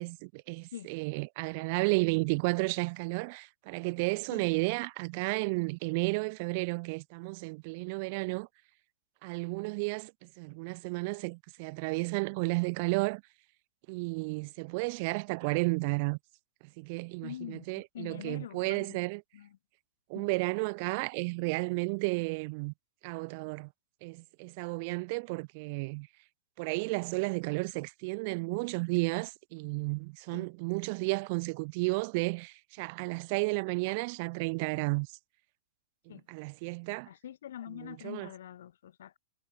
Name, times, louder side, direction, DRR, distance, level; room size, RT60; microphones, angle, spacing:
voice 1, 0.0-8.5 9.2-13.2 13.9-16.2 16.8-19.2 20.1-22.7 23.0-23.7 24.0-26.1 26.6-35.1 36.3-37.1 37.8-38.3, right 29 dB, 40° right, 0.6 m, -32 dB
voice 2, 17.2-19.0 19.3-19.6 20.1-20.3 30.3-30.5 36.1-36.3 37.0-39.2, left 11 dB, 70° left, 7.4 m, -44 dB
hypercardioid pair, 155°, 0 cm